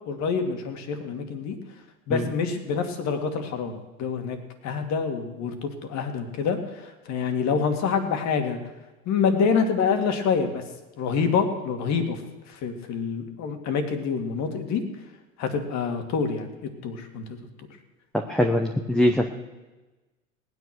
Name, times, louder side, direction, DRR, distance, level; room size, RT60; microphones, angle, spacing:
voice 1, 0.1-1.6 2.1-4.4 4.6-6.6 7.1-8.6 9.1-10.6 11.0-12.2 12.6-14.8 15.4-17.2, left 5 dB, 40° left, 6 dB, 2.4 m, -26 dB
voice 2, 18.3-19.3, left 1 dB, ahead, 3 dB, 1.0 m, -22 dB
18.5 x 9.7 x 6.2 m, 1.1 s
hypercardioid pair, 90°, 42 cm